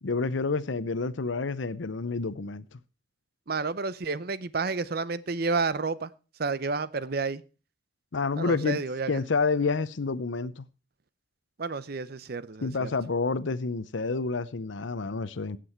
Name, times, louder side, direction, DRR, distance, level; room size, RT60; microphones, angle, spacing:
voice 1, 0.0-2.8 8.1-8.8 9.1-10.7 12.6-15.6, left 4 dB, 85° left, 0.7 m, -29 dB
voice 2, 3.5-6.1 6.4-7.4 8.4-9.2 11.6-12.9, right 4 dB, 55° right, 0.7 m, -30 dB
16.5 x 7.7 x 4.4 m
head